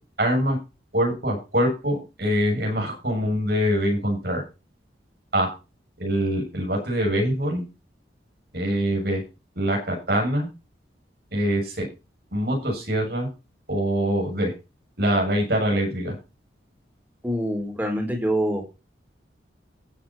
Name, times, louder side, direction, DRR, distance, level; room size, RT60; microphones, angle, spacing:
voice 1, 0.2-0.6 0.9-4.4 5.3-5.5 6.0-7.6 8.5-9.2 9.6-10.5 11.3-11.9 12.3-13.3 13.7-14.5 15.0-16.2, equal, 55° right, 1 dB, 7.1 m, -24 dB
voice 2, 17.2-18.6, equal, 10° right, 3 dB, 4.1 m, -25 dB
15.0 x 8.3 x 4.4 m, 0.29 s
head